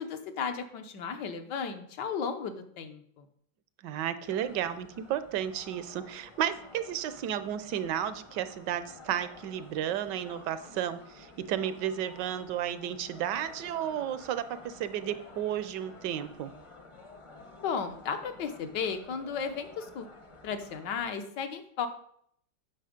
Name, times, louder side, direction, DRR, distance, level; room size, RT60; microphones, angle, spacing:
voice 1, 0.0-3.2 17.6-20.1 20.4-21.9, left 6 dB, 80° left, 7 dB, 1.6 m, -34 dB
voice 2, 3.8-16.5, right 10 dB, 80° right, 13 dB, 1.3 m, -33 dB
sound 1, 4.2-21.1, left 3 dB, 30° left, 0.6 m, -52 dB
9.1 x 5.9 x 5.1 m, 0.66 s
omnidirectional pair, 1.9 m